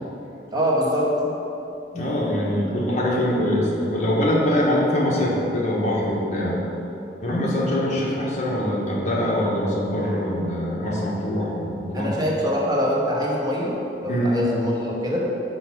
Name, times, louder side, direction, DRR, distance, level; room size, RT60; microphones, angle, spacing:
voice 1, 0.5-1.1 11.9-13.7 14.0-15.3, equal, 25° right, -3 dB, 1.0 m, -23 dB
voice 2, 1.9-6.6 7.2-12.3 14.1-14.4, left 1 dB, 45° left, -4 dB, 1.3 m, -23 dB
5.9 x 5.0 x 5.9 m, 2.9 s
head